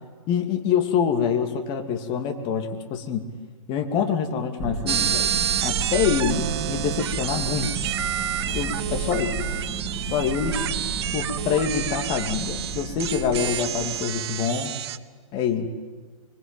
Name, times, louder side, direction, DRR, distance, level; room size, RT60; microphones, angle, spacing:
voice 1, 0.3-3.2 3.7-5.3 5.6-7.7 8.5-9.4 10.1-10.6 11.1-14.7 15.3-15.7, left 7 dB, 25° left, 5 dB, 2.8 m, -25 dB
sound 1, 4.6-14.5, right 3 dB, 15° right, 2.8 m, -32 dB
sound 2, 4.9-15.0, right 10 dB, 45° right, 1.1 m, -29 dB
25.0 x 24.0 x 9.3 m, 1.5 s
hypercardioid pair, 135°, 18 cm